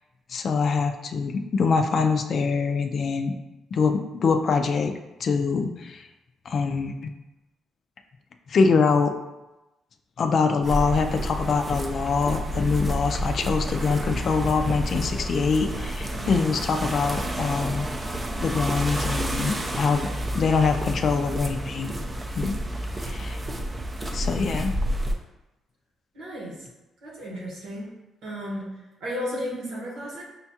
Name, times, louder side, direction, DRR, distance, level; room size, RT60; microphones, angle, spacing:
voice 1, 0.3-3.3 3.7-4.9 5.2-6.0 6.5-7.1 8.5-9.1 10.2-17.9 18.4-20.1 20.3-21.9 22.4-22.6 23.0-23.4 24.1-24.7, left 5 dB, 55° left, 6 dB, 0.3 m, -24 dB
sound 1, 10.6-25.1, equal, 25° right, 0.5 m, -30 dB
voice 2, 16.1-16.5 26.1-26.7 27.0-27.9 28.2-28.7 29.0-30.2, equal, 80° right, -5 dB, 1.3 m, -34 dB
5.1 x 2.3 x 2.8 m, 1.0 s
cardioid pair, 90°, 0 cm